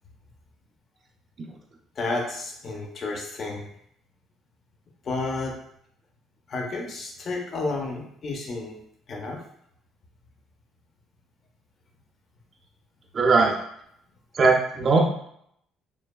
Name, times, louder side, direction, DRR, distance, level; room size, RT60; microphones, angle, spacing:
voice 1, 2.0-3.7 5.0-5.6 6.5-8.8 9.1-9.4, left 3 dB, 50° left, 2 dB, 0.6 m, -31 dB
voice 2, 13.1-13.6 14.3-15.0, right 4 dB, 40° right, 0 dB, 0.5 m, -19 dB
3.2 x 2.1 x 2.2 m, 0.71 s
supercardioid pair, 80°, 0 cm